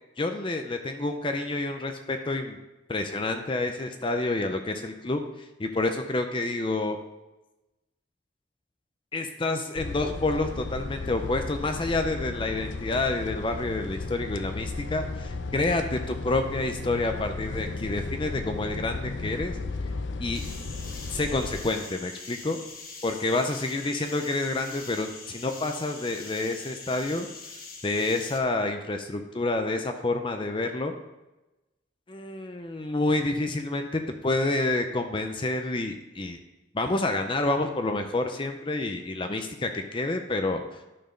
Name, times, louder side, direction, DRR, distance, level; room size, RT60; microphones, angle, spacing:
voice 1, 0.2-2.6 2.9-5.2 5.6-7.0 9.1-19.6 20.2-20.4 21.1-22.6 23.0-27.3 27.8-30.9 32.1-36.4 36.7-40.8, left 2 dB, 25° left, 6 dB, 0.5 m, -28 dB
sound 1, 9.8-21.7, left 3 dB, 85° left, 0.6 m, -35 dB
sound 2, 20.3-28.4, left 4 dB, 50° left, 1.3 m, -43 dB
11.0 x 4.5 x 5.1 m, 1.0 s
head